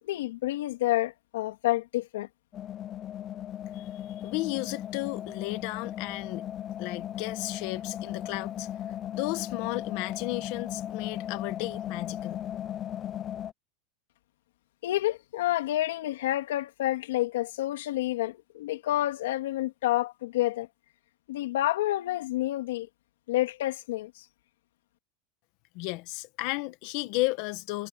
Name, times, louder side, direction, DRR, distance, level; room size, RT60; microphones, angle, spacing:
voice 1, 0.1-2.3 14.8-20.7 21.3-22.9 23.3-24.2, left 15 dB, 85° left, 3.0 m, -29 dB
sound 1, 2.5-13.5, left 11 dB, 25° left, 0.7 m, -37 dB
voice 2, 4.2-6.5 6.8-8.7 9.1-12.4 25.7-27.9, left 21 dB, 55° left, 1.3 m, -33 dB
supercardioid pair, 155°, 0 cm